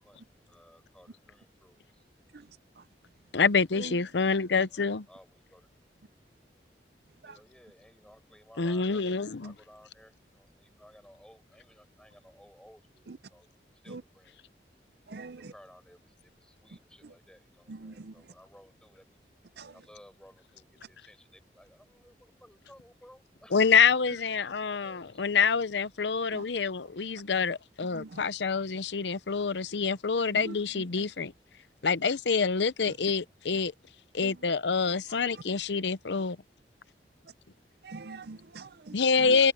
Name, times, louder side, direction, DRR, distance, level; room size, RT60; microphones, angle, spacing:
voice 1, 0.0-2.1 4.5-5.7 7.2-14.4 15.3-19.2 19.7-23.8 24.2-25.4, equal, 5° left, 5.8 m, -58 dB
voice 2, 3.3-5.1 8.6-9.5 23.5-31.3 31.8-33.7 34.1-36.4 38.9-39.5, left 5 dB, 85° left, 0.7 m, -26 dB
voice 3, 15.1-15.5 17.7-18.1 19.6-19.7 26.3-26.4 27.9-28.2 30.3-30.8 34.2-34.3 37.8-38.9 39.2-39.4, right 3 dB, 65° right, 0.6 m, -43 dB
head